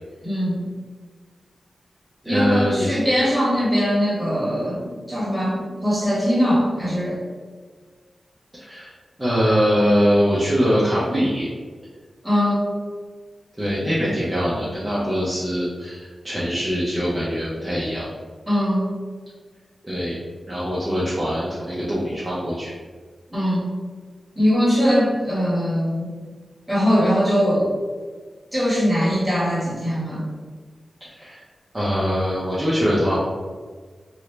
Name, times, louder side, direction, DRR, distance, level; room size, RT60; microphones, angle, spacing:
voice 1, 0.2-0.6 2.2-7.2 12.2-12.7 18.5-18.9 23.3-23.7 24.3-26.1 26.7-27.7 28.5-30.2, equal, 5° left, -7 dB, 1.5 m, -21 dB
voice 2, 2.2-3.0 8.5-8.9 9.2-11.5 13.6-18.1 19.8-20.2 20.5-22.7 31.0-31.4 31.7-33.2, equal, 10° right, -9 dB, 0.7 m, -22 dB
3.0 x 2.6 x 3.3 m, 1.5 s
wide cardioid pair, 110°, 0 cm